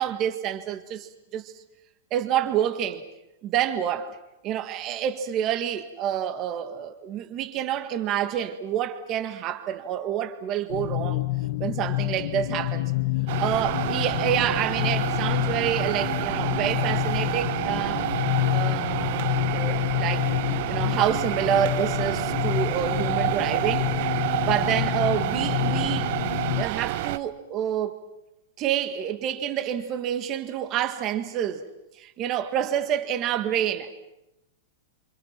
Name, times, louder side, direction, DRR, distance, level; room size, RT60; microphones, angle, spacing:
voice 1, 0.0-1.5 2.1-3.0 3.4-4.2 4.4-11.3 11.6-12.9 13.4-18.1 18.5-20.3 20.7-23.9 24.1-26.2 26.6-28.0 28.6-31.7 32.0-33.9, right 10 dB, 25° right, 1.8 m, -28 dB
sound 1, 10.7-26.6, left 18 dB, 50° left, 0.9 m, -28 dB
sound 2, 13.3-27.2, right 14 dB, 40° right, 0.9 m, -29 dB
28.5 x 27.5 x 6.0 m
supercardioid pair, 175°, 0 cm